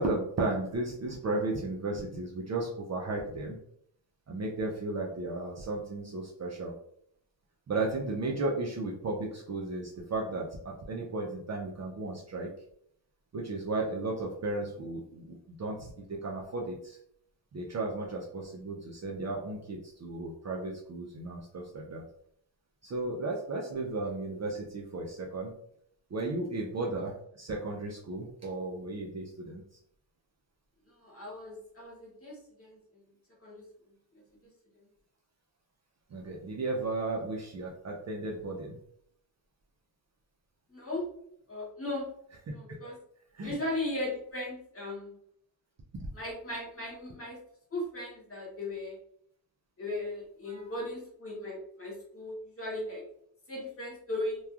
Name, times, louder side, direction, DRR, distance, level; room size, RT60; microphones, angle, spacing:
voice 1, 0.0-3.6 4.3-6.7 7.7-12.5 13.3-17.0 17.5-22.0 22.8-25.5 26.1-29.6 36.1-38.8 43.3-43.5 46.0-46.1 50.5-50.7, right 2 dB, 40° right, -1 dB, 0.4 m, -34 dB
voice 2, 30.8-33.0 33.4-33.6 34.1-34.2 40.7-41.0 41.5-42.1 42.5-43.0 43.4-45.2 46.1-47.4 47.7-49.0 49.8-53.0 53.5-54.4, left 1 dB, 30° left, -3 dB, 1.1 m, -37 dB
2.9 x 2.3 x 2.3 m, 0.69 s
cardioid pair, 100°, 45 cm